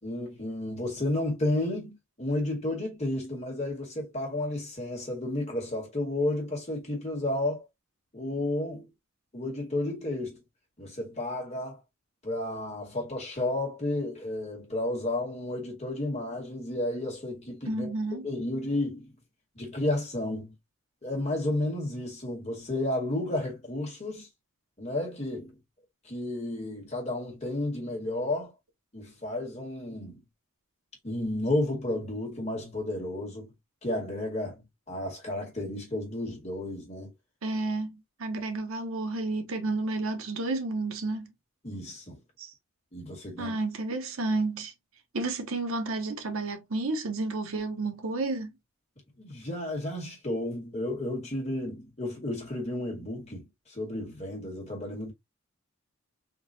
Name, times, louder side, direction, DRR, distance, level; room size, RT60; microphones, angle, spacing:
voice 1, 0.0-7.7 8.1-8.9 9.3-10.4 10.8-11.8 12.2-19.1 19.6-20.5 21.0-24.3 24.8-25.6 26.1-28.5 28.9-30.2 31.0-33.5 33.8-37.1 41.6-42.2 42.9-43.6 49.2-55.1, left 1 dB, 30° left, 1.7 m, -32 dB
voice 2, 17.7-18.3 37.4-41.3 42.4-42.5 43.4-44.7 45.1-48.5, right 2 dB, 80° right, 0.8 m, -31 dB
3.9 x 2.7 x 2.6 m
head